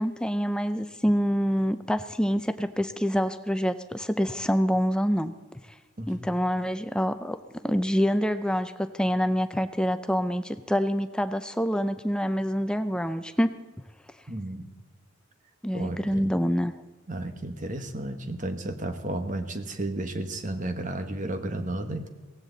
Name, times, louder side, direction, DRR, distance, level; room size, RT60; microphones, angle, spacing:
voice 1, 0.0-5.3 6.1-7.4 7.6-13.5 15.6-16.7, equal, 5° left, 10 dB, 0.5 m, -26 dB
voice 2, 6.0-6.4 14.3-14.7 15.7-16.3 17.1-22.1, right 1 dB, 35° right, 7 dB, 1.3 m, -33 dB
17.5 x 15.5 x 4.0 m, 1.3 s
head